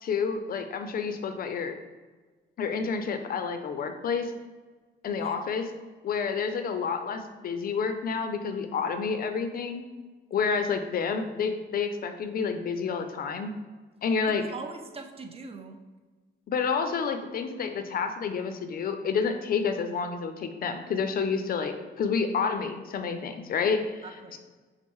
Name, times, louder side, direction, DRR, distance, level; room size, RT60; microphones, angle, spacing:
voice 1, 0.0-1.7 2.6-4.3 5.0-5.7 6.0-9.8 10.3-13.5 14.0-14.4 16.5-23.8 24.3-24.4, left 5 dB, 50° left, 7 dB, 0.4 m, -29 dB
voice 2, 14.3-15.8 23.7-24.4, right 4 dB, 30° right, 5 dB, 0.5 m, -42 dB
5.2 x 2.0 x 3.0 m, 1.3 s
cardioid pair, 90°, 20 cm